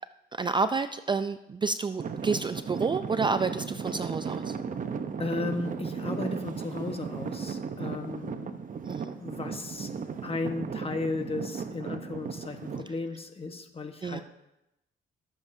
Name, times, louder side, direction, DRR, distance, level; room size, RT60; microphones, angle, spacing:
voice 1, 0.4-4.6 8.9-9.1 14.0-14.2, right 4 dB, 25° right, 11 dB, 0.4 m, -29 dB
Traffic noise roadway noise / Engine, 2.0-12.8, right 6 dB, 40° right, 0.8 m, -35 dB
voice 2, 5.2-8.6 9.2-9.9 10.2-14.2, left 3 dB, 30° left, 6 dB, 1.2 m, -35 dB
21.0 x 7.4 x 2.7 m, 0.91 s
cardioid pair, 90°, 20 cm